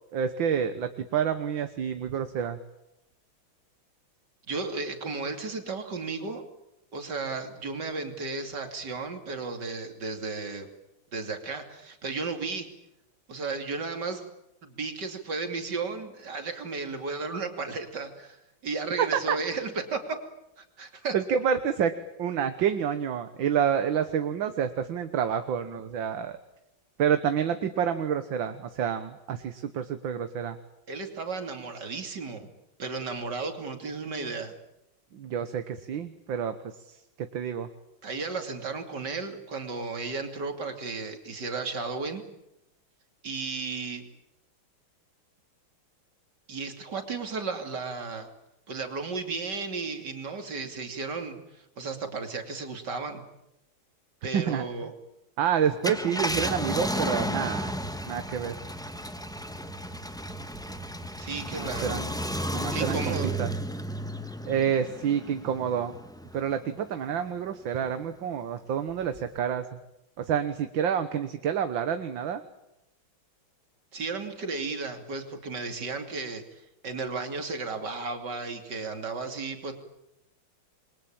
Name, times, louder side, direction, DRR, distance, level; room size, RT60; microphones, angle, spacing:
voice 1, 0.1-2.6 19.0-19.4 21.1-26.4 27.0-30.6 35.1-36.5 36.9-37.0 37.3-37.7 54.3-54.6 55.4-57.7 58.1-58.6 61.5-62.1 62.5-63.1 63.4-63.5 64.5-65.9 66.3-69.8 70.2-72.4, right 8 dB, 70° right, 9 dB, 1.9 m, -28 dB
voice 2, 4.5-6.4 6.9-10.7 11.1-12.7 13.3-14.2 14.6-18.4 18.6-20.2 20.6-21.1 30.9-32.5 32.8-34.5 38.0-42.2 43.2-44.1 46.5-48.3 48.7-53.2 54.2-54.9 61.2-62.0 62.7-63.3 73.9-79.7, right 4 dB, 55° right, 6 dB, 3.4 m, -34 dB
Car, 55.7-66.5 67.0-67.1 69.1-69.4, equal, ahead, 1.1 m, -33 dB
28.0 x 23.0 x 8.9 m, 0.86 s
omnidirectional pair, 2.3 m